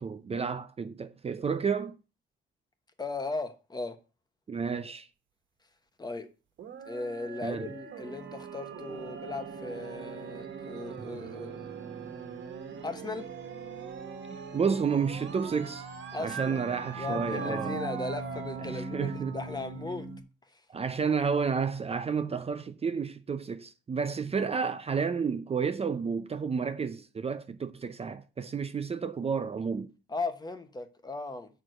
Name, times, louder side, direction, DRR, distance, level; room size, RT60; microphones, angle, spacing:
voice 1, 0.0-2.0 4.5-5.1 7.4-7.7 14.3-15.9 16.2-17.8 18.6-19.4 20.7-29.9, right 6 dB, 30° right, 0.6 m, -31 dB
voice 2, 3.0-4.0 6.0-6.3 6.9-11.7 12.8-13.3 16.1-16.7 17.0-20.1 20.5-20.6 30.1-31.5, left 3 dB, 20° left, 1.1 m, -37 dB
sound 1, 6.6-20.2, right 5 dB, 65° right, 1.4 m, -40 dB
6.1 x 4.6 x 6.4 m
cardioid pair, 90°, 20 cm